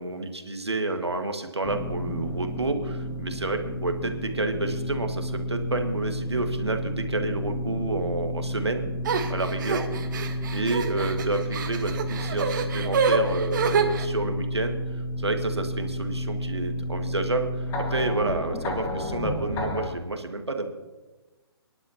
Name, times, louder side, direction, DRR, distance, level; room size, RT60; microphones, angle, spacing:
voice 1, 0.0-8.9 9.3-9.9 10.5-20.7, right 2 dB, 85° right, 5 dB, 1.7 m, -29 dB
sound 1, 1.6-19.9, equal, 20° left, 1.8 m, -31 dB
sound 2, 9.0-14.1, right 5 dB, 50° right, 1.5 m, -27 dB
25.0 x 11.0 x 2.9 m, 1.2 s
figure-of-eight pair, 135°, 14 cm